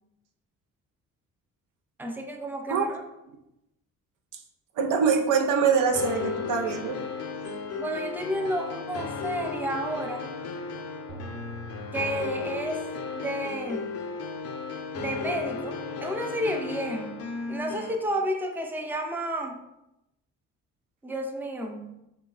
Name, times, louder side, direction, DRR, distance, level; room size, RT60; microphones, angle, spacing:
voice 1, 2.0-3.1 7.8-10.2 11.9-12.8 13.1-14.0 14.9-17.2 17.5-19.6 21.0-21.9, right 1 dB, 5° right, 2 dB, 0.5 m, -31 dB
voice 2, 4.8-7.0, right 5 dB, 85° right, 3 dB, 0.6 m, -24 dB
sound 1, 5.9-18.0, left 4 dB, 55° left, 0.6 m, -35 dB
sound 2, 11.1-13.0, right 3 dB, 40° right, 1.0 m, -45 dB
3.9 x 2.2 x 3.8 m, 0.88 s
cardioid pair, 90°, 30 cm